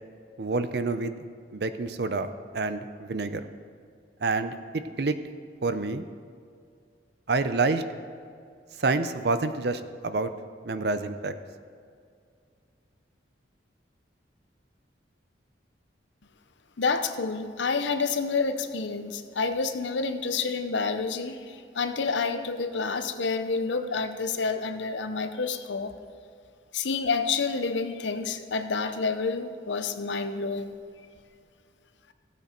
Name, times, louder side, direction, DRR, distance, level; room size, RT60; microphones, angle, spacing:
voice 1, 0.4-1.1 1.5-2.3 2.5-3.4 4.2-5.2 5.6-6.0 7.3-7.8 8.8-10.3 10.6-11.3, right 3 dB, 60° right, 10 dB, 0.6 m, -28 dB
voice 2, 16.8-25.9 26.7-30.8, left 4 dB, 85° left, 9 dB, 0.7 m, -29 dB
15.0 x 8.3 x 4.4 m, 2.2 s
head